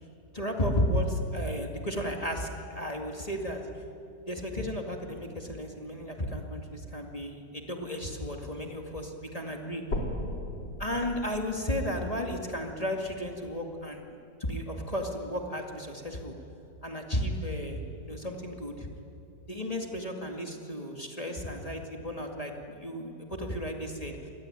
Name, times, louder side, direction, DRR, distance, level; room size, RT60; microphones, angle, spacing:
voice 1, 0.3-3.8 4.3-9.8 10.8-16.3 16.8-18.9 19.5-24.3, equal, 20° left, 2 dB, 2.3 m, -33 dB
sound 1, 9.9-13.9 14.5-14.6 15.1-15.2 15.6-15.7 16.5-16.6, left 1 dB, 85° left, 4.3 m, -38 dB
28.0 x 21.5 x 9.0 m, 2.8 s
omnidirectional pair, 1.9 m